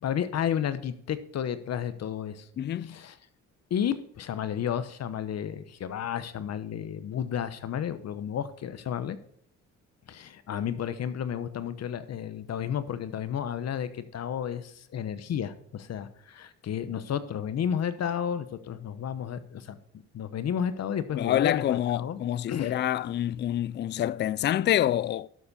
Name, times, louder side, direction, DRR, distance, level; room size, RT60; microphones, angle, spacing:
voice 1, 0.0-2.5 2.8-3.2 3.7-9.2 10.1-19.8 20.1-22.2 22.5-22.8, left 9 dB, 60° left, 1.0 m, -32 dB
voice 2, 2.6-3.0 21.1-25.3, left 12 dB, 35° left, 0.4 m, -27 dB
12.0 x 7.1 x 4.1 m
cardioid pair, 90°, 30 cm